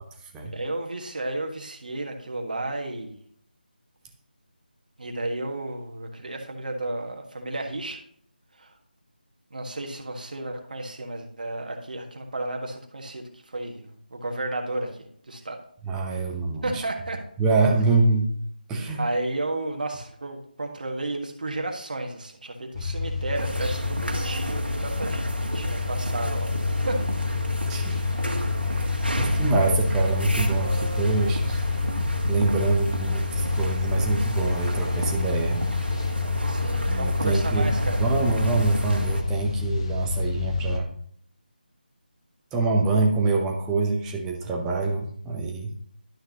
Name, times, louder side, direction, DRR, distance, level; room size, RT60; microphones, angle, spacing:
voice 1, 0.4-3.2 5.0-8.0 8.6-8.7 9.5-15.6 16.6-17.2 19.0-26.5 26.8-27.0 27.7-28.0 36.5-38.0, right 2 dB, 55° right, 2 dB, 1.6 m, -32 dB
voice 2, 15.9-16.8 17.4-18.3 18.7-19.0 27.7-28.0 28.3-31.6 32.3-35.6 36.9-40.9 42.5-45.7, right 3 dB, 10° right, 0 dB, 0.7 m, -25 dB
sound 1, 22.7-40.8, left 4 dB, 30° left, 1.0 m, -28 dB
sound 2, 23.3-39.2, right 1 dB, 90° right, 1.5 m, -31 dB
11.5 x 5.6 x 2.9 m, 0.64 s
figure-of-eight pair, 160°, 5 cm